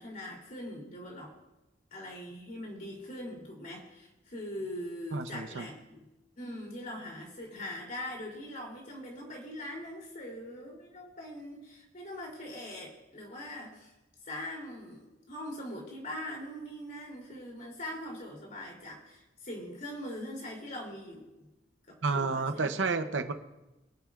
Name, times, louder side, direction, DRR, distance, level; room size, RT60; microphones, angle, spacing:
voice 1, 0.0-1.3 1.9-6.0 6.4-13.9 14.3-21.4 21.9-22.7, left 1 dB, 50° left, -1 dB, 3.2 m, -42 dB
voice 2, 5.1-5.7 22.0-23.3, right 4 dB, 80° right, 8 dB, 0.8 m, -30 dB
23.0 x 8.3 x 2.5 m, 1.0 s
head